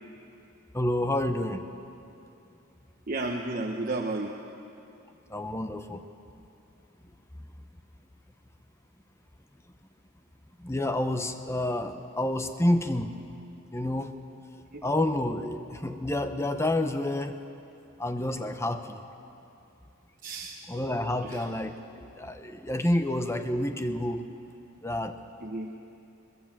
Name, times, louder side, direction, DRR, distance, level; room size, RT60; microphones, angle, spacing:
voice 1, 0.7-1.6 5.3-6.0 10.6-13.1 13.7-14.1 14.8-17.4 18.0-19.0 20.7-24.3 24.8-25.2, left 1 dB, 15° left, 7 dB, 0.9 m, -29 dB
voice 2, 3.1-4.3 14.7-14.8 20.2-20.6 21.2-21.5 25.4-25.7, right 2 dB, 40° right, 1 dB, 1.1 m, -32 dB
22.0 x 21.0 x 7.5 m, 2.7 s
head